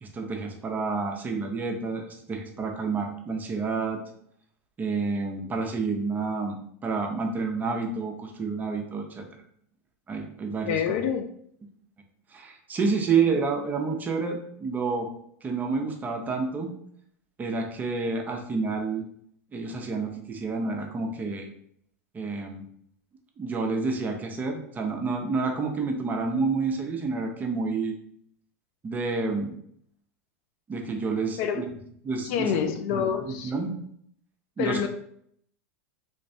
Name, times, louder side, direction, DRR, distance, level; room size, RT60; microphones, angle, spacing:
voice 1, 0.0-4.0 4.8-6.6 6.8-9.2 10.1-10.8 12.3-15.1 15.4-16.7 17.4-19.0 19.5-21.5 22.1-22.7 23.4-28.0 28.8-29.5 30.7-31.7 32.0-32.5 32.9-33.7 34.6-34.9, right 4 dB, 20° right, 3 dB, 0.6 m, -29 dB
voice 2, 10.7-11.3 31.4-31.7 32.2-33.5 34.6-34.9, left 8 dB, 55° left, 7 dB, 0.4 m, -27 dB
3.1 x 3.1 x 2.7 m, 0.67 s
hypercardioid pair, 115°, 8 cm